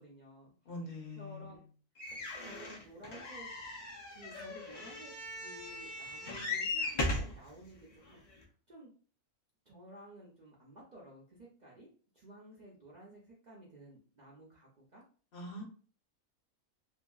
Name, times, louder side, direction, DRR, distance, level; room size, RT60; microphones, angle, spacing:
voice 1, 0.0-0.5 1.2-1.6 2.4-3.5 4.1-8.9 9.7-11.9 12.1-15.0, right 1 dB, 55° right, -4 dB, 0.5 m, -54 dB
voice 2, 0.7-1.6 15.3-15.6, left 1 dB, 50° left, -1 dB, 0.9 m, -43 dB
sound 1, 2.0-7.4 8.1-8.2 8.4-8.5, left 2 dB, 85° left, 0.3 m, -38 dB
2.7 x 2.6 x 2.3 m, 0.40 s
omnidirectional pair, 1.5 m